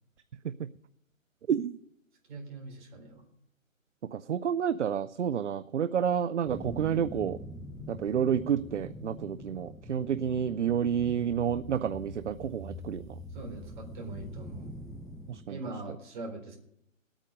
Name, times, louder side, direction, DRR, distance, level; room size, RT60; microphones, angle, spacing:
voice 1, 1.5-1.8 4.1-7.4 7.9-13.1 15.3-15.6, right 8 dB, 60° right, 14 dB, 0.6 m, -30 dB
voice 2, 2.3-3.2 13.3-14.7 15.5-16.6, right 2 dB, 35° right, 0 dB, 4.1 m, -42 dB
sound 1, 6.4-15.4, left 1 dB, 5° right, 0.7 m, -44 dB
19.5 x 9.0 x 5.2 m, 0.75 s
hypercardioid pair, 160°, 40 cm